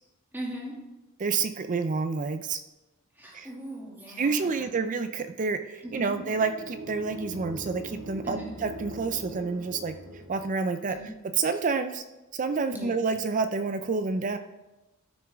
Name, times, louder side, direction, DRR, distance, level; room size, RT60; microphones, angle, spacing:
voice 1, 0.3-0.7 3.2-4.5 5.8-6.2 8.2-8.5 10.9-11.1 12.7-13.0, equal, 10° right, -4 dB, 2.3 m, -39 dB
voice 2, 1.2-2.6 3.3-3.5 4.2-9.9 10.3-12.0 12.3-14.4, right 4 dB, 35° right, 10 dB, 0.4 m, -29 dB
sound 1, 5.8-10.8, right 1 dB, 85° right, 2.2 m, -42 dB
13.0 x 6.3 x 3.5 m, 1.0 s
head